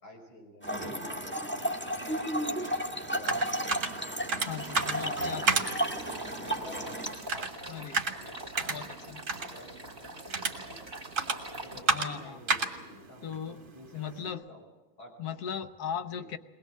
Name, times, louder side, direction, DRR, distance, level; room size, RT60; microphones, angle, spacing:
voice 1, 0.0-2.6 3.1-4.1 4.9-5.8 6.3-7.8 8.2-10.9 11.6-13.5 13.7-14.7 15.0-15.2 16.1-16.3, left 1 dB, 75° left, 0 dB, 6.8 m, -50 dB
Trickle dribble / Fill (with liquid), 0.6-7.3, right 1 dB, 5° left, 1.4 m, -33 dB
sound 1, 2.6-14.3, right 4 dB, 40° right, 1.9 m, -34 dB
voice 2, 4.5-5.5 7.7-8.0 8.7-9.2 11.7-12.4 13.2-13.6 13.9-14.4 15.2-16.4, left 8 dB, 60° left, 10 dB, 1.2 m, -38 dB
sound 2, 4.5-11.8, right 2 dB, 20° right, 3.1 m, -44 dB
21.5 x 20.5 x 7.4 m, 1.2 s
omnidirectional pair, 2.2 m